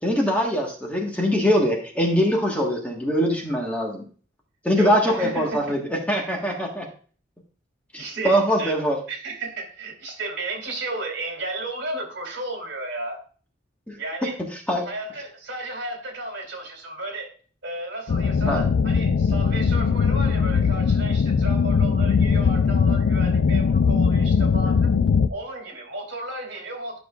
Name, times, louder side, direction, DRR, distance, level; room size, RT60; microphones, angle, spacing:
voice 1, 0.0-4.0 4.6-6.9 7.9-9.0 13.9-14.0 14.7-14.8 18.5-18.6, equal, 5° left, -1 dB, 1.4 m, -22 dB
voice 2, 4.8-5.6 8.0-8.8 9.1-13.2 14.0-14.4 14.8-17.3 17.6-24.9 25.3-27.0, right 2 dB, 70° right, 2 dB, 2.7 m, -33 dB
sound 1, 18.1-25.3, left 5 dB, 75° left, 0.4 m, -20 dB
12.0 x 6.2 x 2.4 m, 0.41 s
head